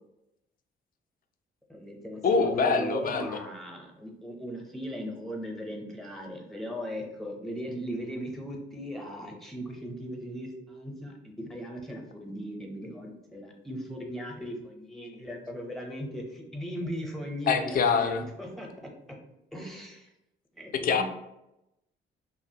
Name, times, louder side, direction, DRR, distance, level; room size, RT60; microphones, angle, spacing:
voice 1, 1.7-18.9 19.5-20.1 20.5-21.0, equal, ahead, 1 dB, 0.6 m, -38 dB
voice 2, 2.2-3.4 17.5-18.2 20.7-21.0, left 5 dB, 45° left, 7 dB, 0.4 m, -25 dB
2.8 x 2.4 x 2.7 m, 0.88 s
cardioid pair, 90°, 20 cm